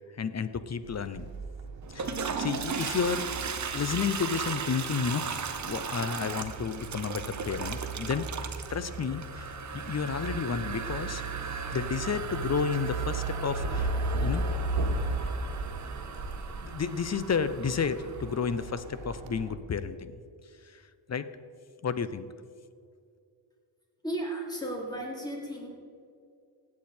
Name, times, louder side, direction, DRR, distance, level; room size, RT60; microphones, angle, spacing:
voice 1, 0.2-1.3 1.9-3.2 3.7-11.2 11.7-13.9 14.2-14.4 16.5-20.1 20.7-20.8 21.1-21.2 21.8-22.3, left 6 dB, 35° left, 13 dB, 0.6 m, -31 dB
sound 1, 0.8-19.6, right 2 dB, 70° right, 1.4 m, -36 dB
Toilet flush, 1.8-18.6, right 6 dB, 40° right, 0.8 m, -37 dB
voice 2, 24.0-25.7, right 1 dB, 10° left, -1 dB, 2.9 m, -34 dB
16.0 x 8.5 x 4.3 m, 2.3 s
cardioid pair, 95°, 46 cm